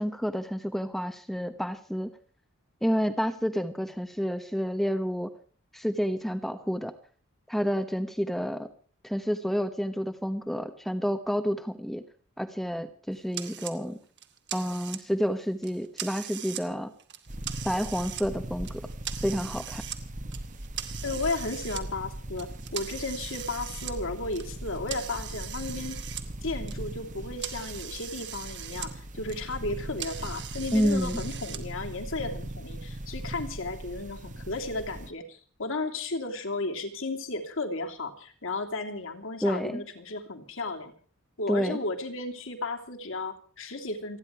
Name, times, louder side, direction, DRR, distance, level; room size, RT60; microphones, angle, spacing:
voice 1, 0.0-2.1 2.8-5.3 5.7-6.9 7.5-8.7 9.0-12.0 12.4-14.0 14.5-16.9 17.6-18.8 19.2-19.8 30.7-31.2 39.4-39.8 41.5-41.8, equal, ahead, 8 dB, 1.0 m, -29 dB
sound 1, 13.3-13.8 14.2-15.2 15.6-16.6 17.0-18.2 18.6-20.0 20.3-21.8 22.4-26.3 26.5-28.9 29.2-31.6, right 11 dB, 50° right, 2.1 m, -40 dB
sound 2, 17.3-35.1, right 1 dB, 35° right, 1.3 m, -39 dB
voice 2, 21.0-26.0 26.4-40.9 41.4-44.2, left 2 dB, 60° left, 4 dB, 3.0 m, -34 dB
29.0 x 10.5 x 4.6 m, 0.42 s
head